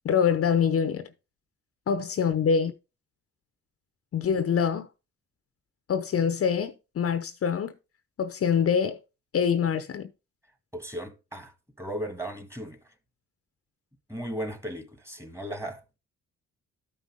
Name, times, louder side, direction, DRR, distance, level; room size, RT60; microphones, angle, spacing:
voice 1, 0.0-1.1 1.9-2.7 4.1-4.9 5.9-7.7 8.2-9.0 9.3-10.1, left 7 dB, 50° left, 0.8 m, -25 dB
voice 2, 10.7-12.9 14.1-16.0, right 1 dB, 10° right, 1.8 m, -36 dB
12.5 x 5.4 x 3.6 m
cardioid pair, 90°, 30 cm